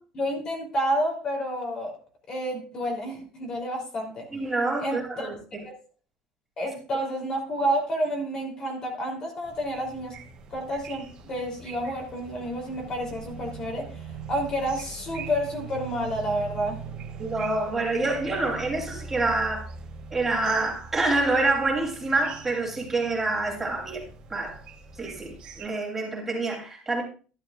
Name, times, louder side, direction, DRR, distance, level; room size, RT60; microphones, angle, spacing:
voice 1, 0.1-1.9 2.3-4.3 4.8-5.3 5.6-5.7 6.6-10.1 10.5-16.8, equal, 35° left, 3.2 m, -30 dB
voice 2, 4.3-5.6 17.2-19.7 20.1-24.0 24.3-24.6 25.0-27.0, right 2 dB, 15° right, 3.2 m, -27 dB
sound 1, 9.4-25.7, right 5 dB, 45° right, 2.1 m, -42 dB
12.5 x 11.5 x 2.5 m
cardioid pair, 140°, 2 cm